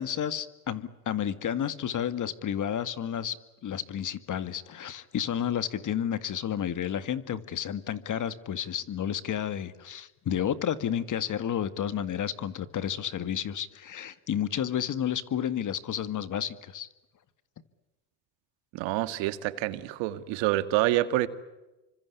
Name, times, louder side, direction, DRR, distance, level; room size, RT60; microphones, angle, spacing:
voice 1, 0.0-3.4 3.6-16.9, left 9 dB, 40° left, 13 dB, 2.0 m, -31 dB
voice 2, 18.7-21.3, right 15 dB, 75° right, 12 dB, 2.1 m, -27 dB
28.5 x 25.0 x 8.3 m, 1.0 s
supercardioid pair, 100°, 45 cm